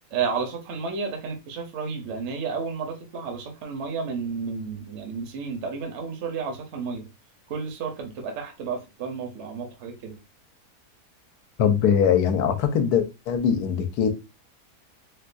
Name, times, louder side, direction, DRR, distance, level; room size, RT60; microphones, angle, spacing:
voice 1, 0.1-7.1 7.5-10.2, right 5 dB, 55° right, 0.9 m, -32 dB
voice 2, 11.6-14.1, left 7 dB, 80° left, 1.2 m, -22 dB
4.4 x 2.3 x 2.5 m
omnidirectional pair, 1.7 m